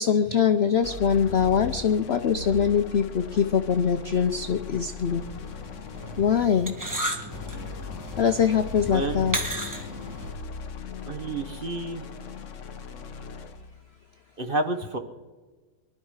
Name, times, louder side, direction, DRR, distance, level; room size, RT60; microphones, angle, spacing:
voice 1, 0.0-5.2 6.2-6.8 8.2-9.4, left 7 dB, 80° left, 8 dB, 0.5 m, -23 dB
sound 1, 0.8-6.4 7.3-13.7, left 5 dB, 50° left, 1.0 m, -39 dB
sound 2, 5.0-10.3, equal, 10° right, 1.4 m, -35 dB
voice 2, 8.9-9.3 11.1-12.1 14.4-15.0, right 2 dB, 35° right, 6 dB, 1.0 m, -30 dB
23.5 x 12.0 x 4.8 m, 1.3 s
omnidirectional pair, 1.9 m